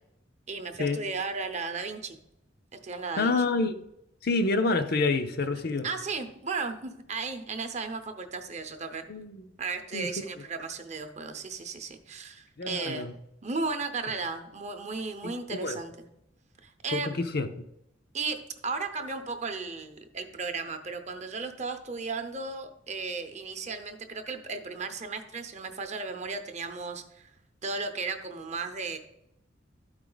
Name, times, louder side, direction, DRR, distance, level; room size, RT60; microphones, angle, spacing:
voice 1, 0.5-2.2 2.7-3.3 5.6-9.1 9.6-13.1 13.4-16.1 16.6-17.1 18.1-27.3 27.6-29.0, right 4 dB, 35° right, 0.7 m, -35 dB
voice 2, 3.2-3.8 4.2-5.9 9.1-9.5 9.9-10.1 12.6-13.1 15.2-15.8 16.9-17.5, left 3 dB, 55° left, 0.6 m, -28 dB
12.5 x 4.8 x 3.9 m
head